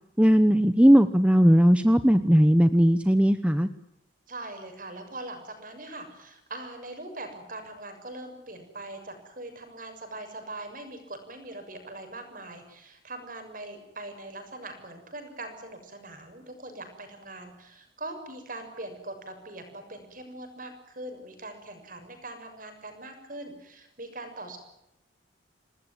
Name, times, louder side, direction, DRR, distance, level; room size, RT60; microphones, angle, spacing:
voice 1, 0.2-3.7, equal, 5° right, 10 dB, 0.9 m, -18 dB
voice 2, 4.3-24.6, right 2 dB, 45° right, 7 dB, 6.8 m, -41 dB
28.0 x 19.0 x 9.5 m, 0.88 s
head